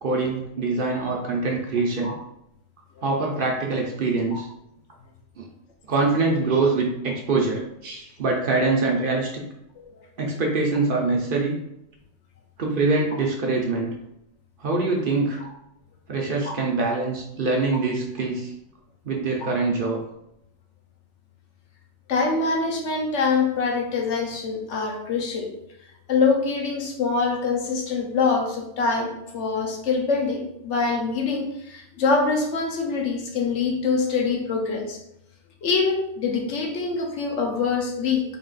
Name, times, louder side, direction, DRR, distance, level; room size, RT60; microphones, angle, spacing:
voice 1, 0.0-2.1 3.0-4.5 5.4-5.5 5.9-9.4 10.2-11.6 12.6-13.9 14.6-15.4 16.1-18.5 19.0-20.0, right 3 dB, 55° right, 0 dB, 0.7 m, -24 dB
voice 2, 22.1-25.5 26.1-35.0 35.6-38.2, left 4 dB, 75° left, 1 dB, 1.0 m, -24 dB
3.7 x 2.4 x 3.8 m, 0.81 s
omnidirectional pair, 1.2 m